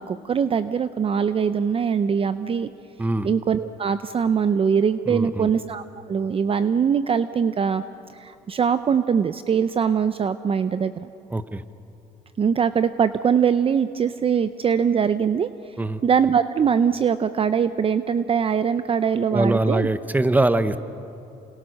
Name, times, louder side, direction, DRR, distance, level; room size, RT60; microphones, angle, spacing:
voice 1, 0.0-2.7 3.2-7.8 8.1-11.1 12.4-15.5 16.0-19.9, right 7 dB, 35° right, 12 dB, 0.6 m, -22 dB
voice 2, 5.1-5.5 11.3-11.6 15.8-16.0 19.3-20.8, right 2 dB, 10° right, 12 dB, 1.0 m, -22 dB
29.0 x 27.0 x 6.5 m, 2.8 s
cardioid pair, 110°, 17 cm